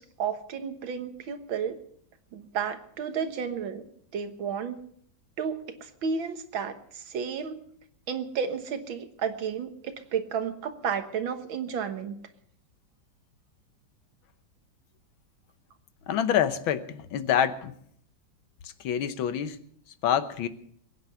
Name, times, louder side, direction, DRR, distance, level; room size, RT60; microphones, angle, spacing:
voice 1, 0.0-1.8 2.3-3.8 4.1-4.8 5.4-7.6 8.1-12.2, right 6 dB, 85° right, 9 dB, 2.1 m, -32 dB
voice 2, 16.1-17.7 18.8-19.6 20.0-20.5, left 9 dB, 90° left, 12 dB, 1.8 m, -26 dB
22.0 x 9.5 x 6.8 m, 0.65 s
omnidirectional pair, 2.1 m